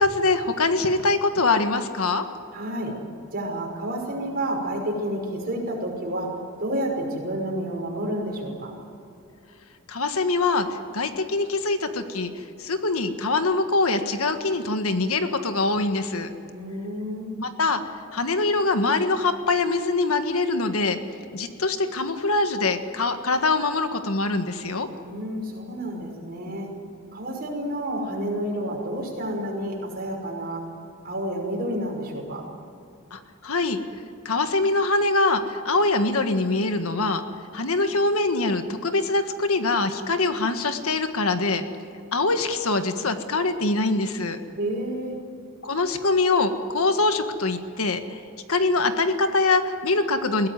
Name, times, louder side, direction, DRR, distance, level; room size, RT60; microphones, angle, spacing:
voice 1, 0.0-2.2 9.9-10.7 10.9-16.3 17.4-17.8 18.1-21.0 21.3-24.9 33.1-33.8 34.2-37.2 37.5-41.6 42.1-44.4 45.6-48.2 48.5-50.5, left 3 dB, 75° left, 8 dB, 1.6 m, -23 dB
voice 2, 2.5-2.9 3.3-6.3 6.6-8.7 16.5-17.3 25.0-26.7 27.1-30.6 31.0-32.4 44.6-45.1, right 1 dB, 45° right, 0 dB, 5.7 m, -30 dB
21.5 x 17.5 x 9.6 m, 2.6 s
head